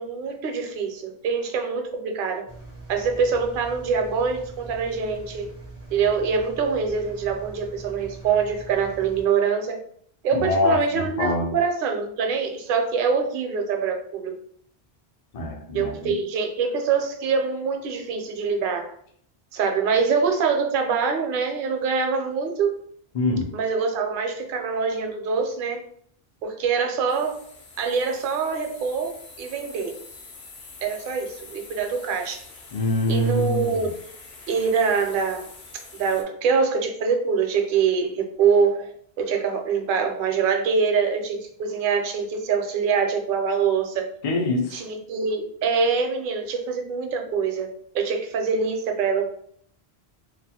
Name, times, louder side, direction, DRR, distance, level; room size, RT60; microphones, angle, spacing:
voice 1, 0.0-2.4 2.9-5.5 5.9-9.8 10.2-14.3 15.7-18.9 19.5-22.8 23.5-25.8 26.4-27.4 27.8-30.0 30.8-32.4 33.1-33.9 34.5-35.5 35.9-38.9 39.2-44.0 44.7-49.3, right 5 dB, 65° right, 4 dB, 0.7 m, -24 dB
Engine, 2.5-9.3, right 2 dB, 25° right, 0.3 m, -42 dB
voice 2, 10.3-11.5 15.3-16.1 23.1-23.5 32.7-33.9 44.2-44.8, left 2 dB, 50° left, 1 dB, 0.4 m, -24 dB
sound 1, 27.1-36.2, left 3 dB, 80° left, 0.9 m, -45 dB
2.4 x 2.3 x 2.7 m, 0.62 s
omnidirectional pair, 1.1 m